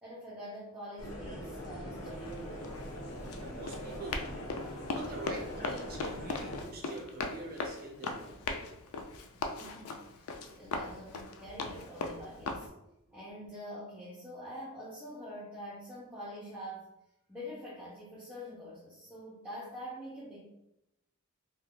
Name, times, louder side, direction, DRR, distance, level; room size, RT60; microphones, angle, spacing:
voice 1, 0.0-2.9 9.3-10.3 10.6-12.7 13.1-16.9 17.3-20.5, equal, 5° right, -9 dB, 0.7 m, -45 dB
sound 1, 1.0-6.6, equal, 70° left, 1.1 m, -42 dB
Run, 2.1-12.7, left 3 dB, 90° left, 0.4 m, -39 dB
voice 2, 3.4-4.5 4.9-8.6 13.1-13.2, right 2 dB, 45° right, 1 dB, 0.5 m, -45 dB
2.6 x 2.3 x 3.6 m, 0.87 s
head